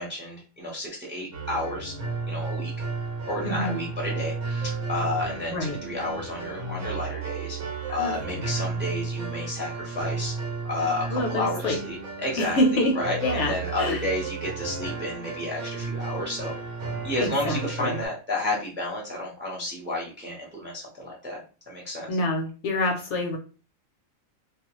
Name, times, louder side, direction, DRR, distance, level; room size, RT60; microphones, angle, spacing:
voice 1, 0.0-1.9 2.3-2.7 3.3-7.6 7.9-10.3 10.7-16.5 17.0-21.4 21.7-22.1, left 2 dB, 10° right, -3 dB, 0.6 m, -31 dB
sound 1, 1.3-18.1, right 4 dB, 70° right, 0.9 m, -33 dB
voice 2, 3.4-3.8 5.5-5.8 7.9-8.4 11.1-11.8 12.4-13.0 13.2-14.0 17.2-18.0 22.1-23.4, left 1 dB, 65° left, 2 dB, 0.9 m, -27 dB
2.3 x 2.2 x 2.9 m, 0.35 s
omnidirectional pair, 1.4 m